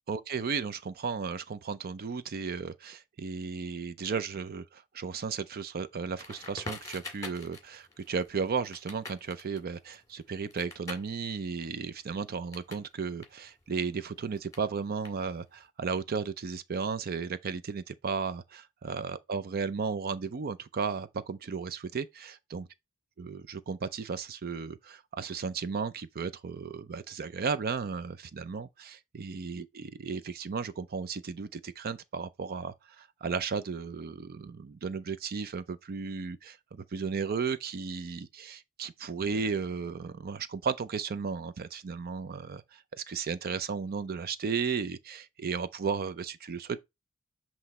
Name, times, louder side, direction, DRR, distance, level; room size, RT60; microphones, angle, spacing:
voice 1, 0.1-22.7 23.2-46.8, right 5 dB, 45° right, 0.5 m, -34 dB
Crackle, 6.2-12.9 13.2-15.6, left 3 dB, 15° left, 2.0 m, -46 dB
7.9 x 3.0 x 4.2 m
head